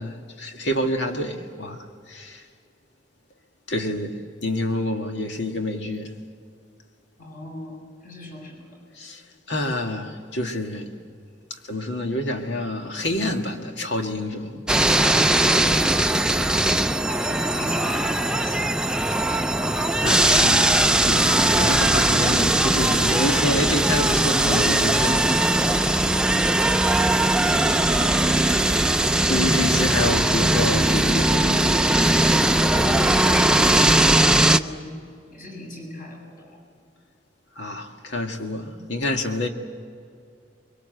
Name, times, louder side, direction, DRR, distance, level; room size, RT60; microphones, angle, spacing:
voice 1, 0.0-2.4 3.7-6.1 9.0-9.2 9.5-10.9 11.5-15.4 19.9-26.4 29.3-31.8 37.6-39.5, left 1 dB, 75° left, 2.0 m, -28 dB
voice 2, 7.2-8.8 17.1-19.1 32.7-34.9 35.3-36.6, left 1 dB, 50° left, 7.5 m, -39 dB
sound 1, 14.7-34.6, right 1 dB, 5° right, 0.5 m, -19 dB
24.5 x 23.0 x 7.9 m
head